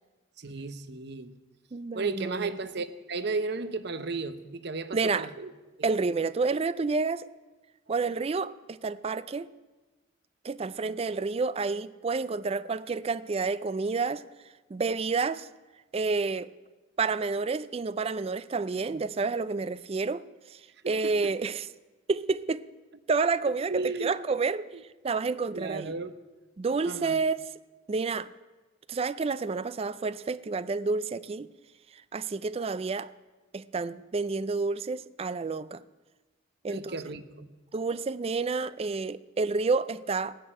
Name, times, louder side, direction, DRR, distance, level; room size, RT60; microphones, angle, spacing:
voice 1, 0.4-1.3 1.9-5.5 20.8-21.1 23.7-24.1 25.5-26.1 26.8-27.2 36.7-37.5, right 3 dB, 55° right, 0.8 m, -34 dB
voice 2, 1.7-2.6 4.9-5.3 5.8-7.3 7.9-9.5 10.4-14.2 14.7-15.5 15.9-16.5 17.0-20.2 20.5-20.6 20.9-21.7 22.1-22.6 23.1-24.7 25.0-25.9 26.6-27.4 27.9-28.3 28.9-31.5 32.1-33.1 33.5-35.8 36.6-37.0 37.7-40.4, right 4 dB, 30° right, 0.4 m, -29 dB
17.5 x 6.6 x 8.7 m
head